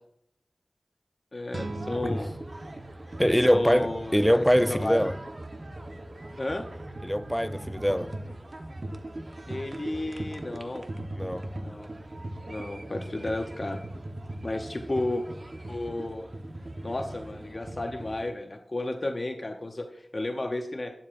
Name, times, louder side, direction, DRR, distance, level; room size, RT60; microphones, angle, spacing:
voice 1, 1.3-2.3 3.2-5.0 6.4-6.6 9.5-10.8 11.6-11.9 12.5-13.8 14.4-15.2 15.7-16.3 16.8-20.9, left 2 dB, 45° left, 0.7 m, -33 dB
sound 1, 1.5-4.5, right 3 dB, 65° right, 0.7 m, -43 dB
sound 2, 1.6-18.3, right 1 dB, 50° right, 1.0 m, -39 dB
voice 2, 3.2-5.1 7.0-8.1 11.2-11.5, equal, 5° left, 0.4 m, -23 dB
12.0 x 10.5 x 2.5 m
wide cardioid pair, 55°, 0 cm